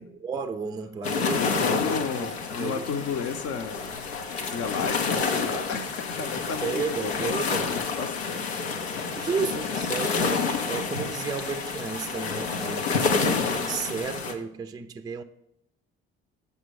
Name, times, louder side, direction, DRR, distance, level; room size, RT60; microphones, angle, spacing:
voice 1, 0.0-2.9 6.2-7.8 9.2-15.2, right 5 dB, 15° right, 0.4 m, -33 dB
sound 1, 1.0-14.3, left 5 dB, 85° left, 0.7 m, -29 dB
voice 2, 1.3-4.1 4.5-8.5 9.0-9.1, left 6 dB, 50° left, 0.8 m, -33 dB
8.1 x 5.5 x 4.7 m
figure-of-eight pair, 50°, 31 cm